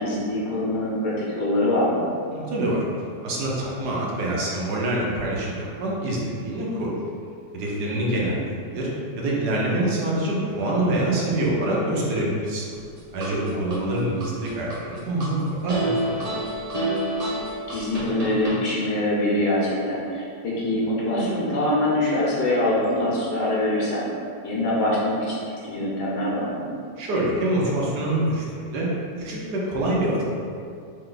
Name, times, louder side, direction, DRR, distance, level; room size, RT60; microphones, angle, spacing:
voice 1, 0.0-2.1 7.8-8.3 13.5-14.2 17.7-24.0 24.4-25.4 25.6-26.7, left 1 dB, 70° left, -6 dB, 1.5 m, -24 dB
voice 2, 2.3-2.8 3.2-6.9 7.5-8.9 9.2-12.6 13.1-16.2 27.0-28.9 29.2-29.4 29.7-30.2, right 1 dB, 70° right, -4 dB, 1.3 m, -25 dB
sound 1, 12.7-13.8 14.2-15.3 15.7-18.6, right 1 dB, 35° right, 0.6 m, -28 dB
3.7 x 3.3 x 3.9 m, 2.4 s
omnidirectional pair, 1.9 m